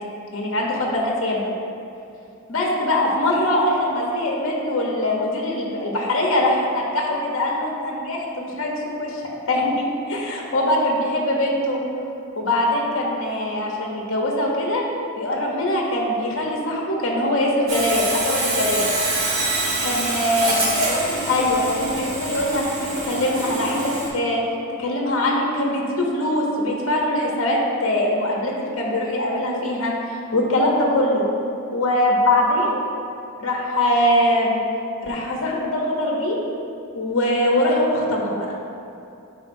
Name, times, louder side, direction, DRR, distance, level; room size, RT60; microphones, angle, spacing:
voice 1, 0.3-1.4 2.5-9.2 9.5-11.8 12.4-14.8 15.2-18.9 19.8-20.6 21.3-24.4 24.8-31.3 31.7-32.8 33.4-34.6 35.0-36.4 37.0-38.5, left 1 dB, 60° left, -2 dB, 0.9 m, -22 dB
Sawing, 17.7-24.1, right 2 dB, 65° right, 1.4 m, -25 dB
10.0 x 3.8 x 2.7 m, 2.6 s
head